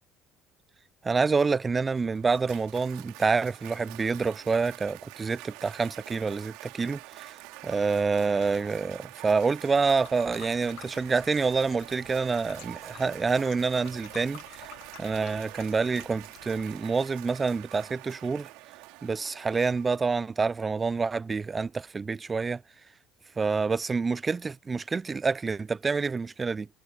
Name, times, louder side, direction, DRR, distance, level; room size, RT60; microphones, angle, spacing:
voice 1, 1.0-7.4 7.6-14.7 15.0-18.5 19.0-22.6 23.4-26.7, right 4 dB, 25° right, 0.5 m, -27 dB
Cheering / Applause, 1.7-20.3, right 23 dB, 75° right, 2.9 m, -46 dB
sound 1, 10.0-16.8, left 24 dB, 75° left, 0.7 m, -51 dB
hypercardioid pair, 70°, 0 cm